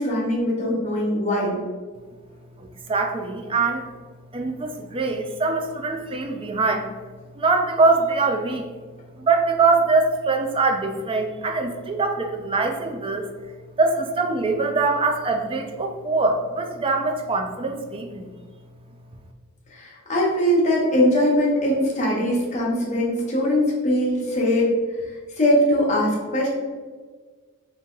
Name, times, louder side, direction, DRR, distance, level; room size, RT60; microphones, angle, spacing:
voice 1, 0.0-1.6 19.7-24.7 25.4-26.5, equal, 35° left, -4 dB, 1.0 m, -21 dB
voice 2, 2.6-3.9 4.3-6.9 7.3-8.7 9.2-13.3 13.8-18.3, right 3 dB, 25° right, 4 dB, 0.3 m, -23 dB
3.6 x 2.9 x 3.7 m, 1.5 s
head